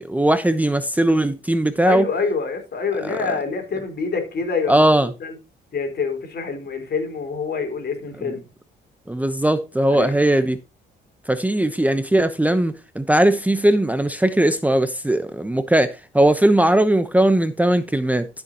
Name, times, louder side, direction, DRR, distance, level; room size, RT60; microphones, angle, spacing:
voice 1, 0.0-2.0 3.0-3.2 4.7-5.1 8.2-8.3 9.1-10.6 11.3-18.3, right 1 dB, 5° right, 0.8 m, -19 dB
voice 2, 1.8-4.8 5.2-5.3 5.7-8.4 9.9-10.4, left 5 dB, 55° left, 4.4 m, -26 dB
13.0 x 7.1 x 2.9 m
cardioid pair, 90°, 20 cm